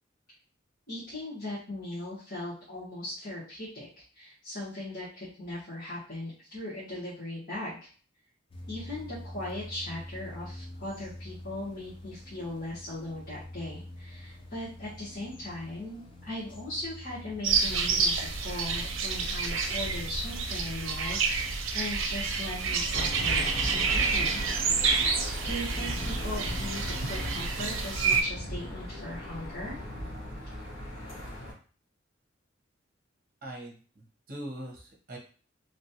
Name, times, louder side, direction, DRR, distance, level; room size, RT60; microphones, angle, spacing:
voice 1, 0.9-3.9 4.1-7.9 8.7-24.4 25.4-29.8, left 1 dB, 45° left, -11 dB, 1.5 m, -39 dB
sound 1, 8.5-23.5, left 1 dB, 25° left, 0.6 m, -46 dB
sound 2, 17.4-28.2, right 5 dB, 80° right, 0.5 m, -29 dB
Aircraft / Engine, 22.9-31.5, equal, 75° left, 1.6 m, -37 dB
voice 2, 33.4-35.2, right 1 dB, 45° right, 0 dB, 0.9 m, -42 dB
3.1 x 2.5 x 2.8 m, 0.40 s
head